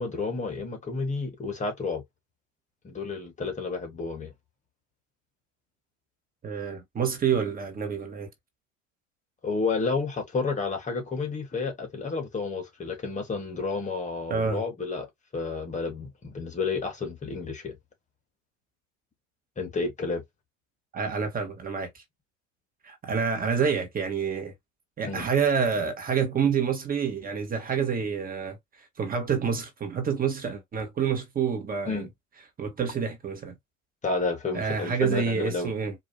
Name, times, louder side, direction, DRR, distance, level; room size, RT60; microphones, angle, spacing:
voice 1, 0.0-2.0 2.8-4.3 9.4-15.1 15.3-17.8 19.6-20.2 25.1-25.3 31.9-32.1 34.0-35.7, left 4 dB, 20° left, 1.3 m, -31 dB
voice 2, 6.4-8.3 14.3-14.6 20.9-22.0 22.8-24.5 25.0-28.6 29.0-32.1 32.6-33.5 34.5-35.9, right 6 dB, 25° right, 1.3 m, -28 dB
4.6 x 2.6 x 2.7 m
hypercardioid pair, 90°, 36 cm